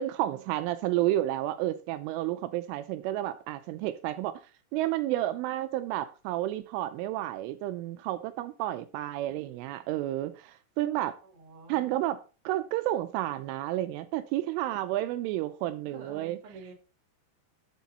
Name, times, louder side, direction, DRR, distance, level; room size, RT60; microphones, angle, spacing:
voice 1, 0.0-4.4 4.7-11.2 11.7-12.2 12.5-16.4, right 14 dB, 80° right, 3.0 m, -31 dB
voice 2, 11.2-12.0 15.9-16.7, right 5 dB, 40° right, 2.4 m, -48 dB
12.0 x 7.3 x 4.1 m
omnidirectional pair, 5.9 m